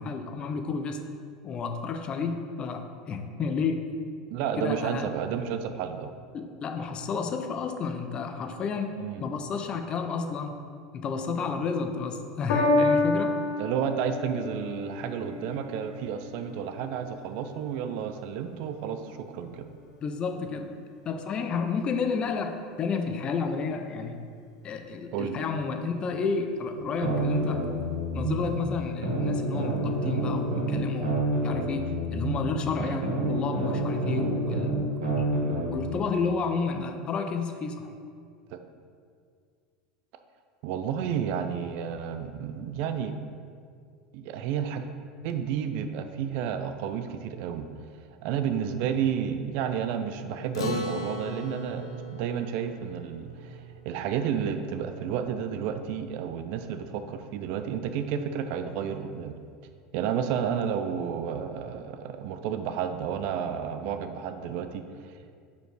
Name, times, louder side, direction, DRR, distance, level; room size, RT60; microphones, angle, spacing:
voice 1, 0.1-1.0 1.4-3.9 4.6-5.1 6.3-10.6 10.9-13.4 20.0-20.7 21.0-24.2 24.6-27.6 28.1-34.8 35.2-35.4 35.7-37.9, left 5 dB, 35° left, 6 dB, 0.6 m, -31 dB
voice 2, 4.3-6.1 9.0-9.2 13.6-19.7 25.1-25.4 32.8-33.0 38.5-38.6 40.6-43.1 44.1-44.9 45.2-47.7 48.2-59.3 59.9-65.1, right 8 dB, 60° right, 8 dB, 0.4 m, -31 dB
Piano, 12.5-19.1 19.9-20.0, left 2 dB, 65° left, 1.3 m, -30 dB
sound 1, 26.8-28.5 29.0-32.5 33.0-35.7, right 2 dB, 85° right, 1.6 m, -28 dB
Acoustic guitar, 50.5-55.2, left 1 dB, 80° left, 0.6 m, -37 dB
5.2 x 4.5 x 4.7 m, 2.2 s
hypercardioid pair, 85°, 3 cm